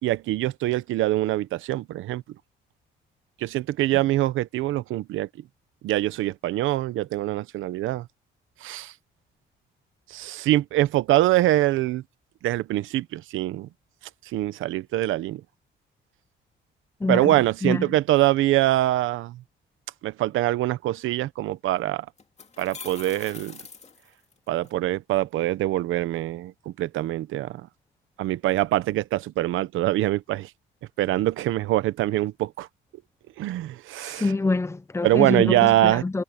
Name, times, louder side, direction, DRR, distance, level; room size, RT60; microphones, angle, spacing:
voice 1, 0.0-2.2 3.4-5.3 5.8-8.1 8.6-8.9 10.1-12.0 12.4-13.7 14.2-15.4 17.1-19.4 20.0-22.1 22.6-23.6 24.5-27.7 28.2-30.5 31.0-32.7 33.4-34.3 35.0-36.0, right 15 dB, 85° right, 0.9 m, -24 dB
voice 2, 17.0-17.4 17.6-17.9 34.1-36.2, left 3 dB, 15° left, 0.6 m, -26 dB
sound 1, 21.5-21.6 22.2-24.7, left 5 dB, 35° left, 2.3 m, -43 dB
cardioid pair, 90°, 20 cm